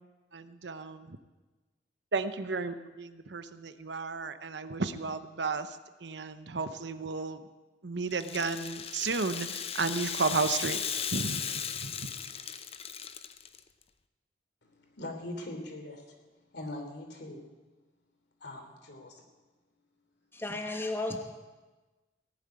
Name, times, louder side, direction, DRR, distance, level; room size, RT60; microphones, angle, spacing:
voice 1, 0.3-1.2 2.1-5.7 6.0-7.4 7.8-10.8 11.1-11.4 11.8-12.1, right 4 dB, 70° right, 11 dB, 0.9 m, -33 dB
Rattle (instrument), 8.1-13.6, left 8 dB, 35° left, 0.7 m, -36 dB
voice 2, 14.9-16.1 16.5-17.4 18.4-19.2, left 1 dB, 65° left, 3 dB, 3.2 m, -41 dB
voice 3, 20.3-21.2, left 2 dB, 15° left, 4 dB, 1.2 m, -33 dB
18.0 x 7.8 x 9.6 m, 1.2 s
head